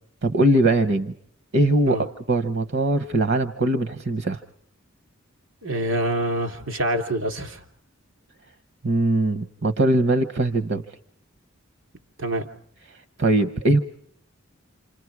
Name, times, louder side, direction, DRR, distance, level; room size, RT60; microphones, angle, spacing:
voice 1, 0.2-1.1 1.5-4.4 8.8-10.8 12.9-13.8, right 1 dB, 60° right, 10 dB, 0.8 m, -21 dB
voice 2, 5.6-7.6 12.2-12.5, right 1 dB, 80° right, 5 dB, 3.0 m, -26 dB
28.5 x 26.5 x 4.7 m, 0.68 s
head